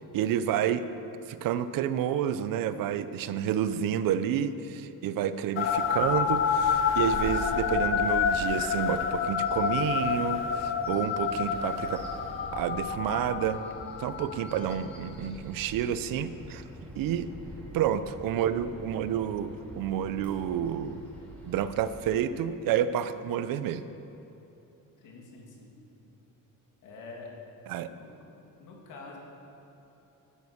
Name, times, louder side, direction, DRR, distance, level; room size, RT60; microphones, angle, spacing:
voice 1, 0.1-0.9 1.3-12.0 12.5-13.6 14.0-16.6 17.0-17.3 17.7-21.0 21.5-23.8 27.7-27.9, right 9 dB, 80° right, 13 dB, 0.7 m, -29 dB
sound 1, 5.6-15.0, left 7 dB, 35° left, 0.7 m, -29 dB
Bird vocalization bird call bird song, 5.6-22.0, equal, 5° left, 3.3 m, -44 dB
voice 2, 25.0-25.8 26.8-27.3 27.9-28.1 28.6-29.2, left 3 dB, 65° left, -1 dB, 2.7 m, -46 dB
12.5 x 9.4 x 7.1 m, 3.0 s
cardioid pair, 180°, 33 cm